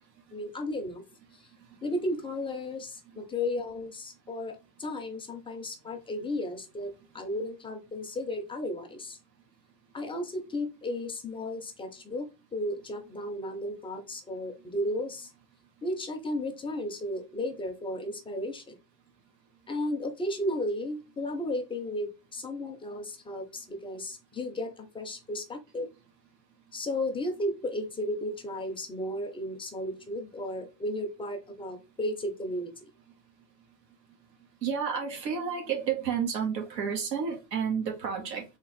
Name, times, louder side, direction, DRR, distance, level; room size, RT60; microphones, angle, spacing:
voice 1, 0.3-1.0 1.8-9.2 9.9-15.3 15.8-18.8 19.7-25.9 26.7-32.7, left 1 dB, 10° left, 0.5 m, -34 dB
voice 2, 34.6-38.4, right 7 dB, 85° right, 1.6 m, -30 dB
3.7 x 2.4 x 4.0 m
hypercardioid pair, 120°, 48 cm